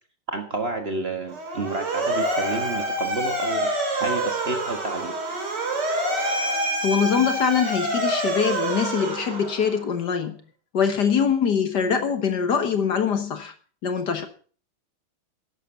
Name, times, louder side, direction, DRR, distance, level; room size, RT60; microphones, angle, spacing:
voice 1, 0.3-3.7 4.0-5.2, right 2 dB, 30° right, 1.6 m, -30 dB
Motor vehicle (road) / Siren, 1.3-9.9, right 1 dB, 55° right, 3.5 m, -27 dB
voice 2, 6.8-10.4 10.7-13.5 13.8-14.3, left 7 dB, 55° left, 1.7 m, -23 dB
11.5 x 11.0 x 5.8 m
omnidirectional pair, 2.2 m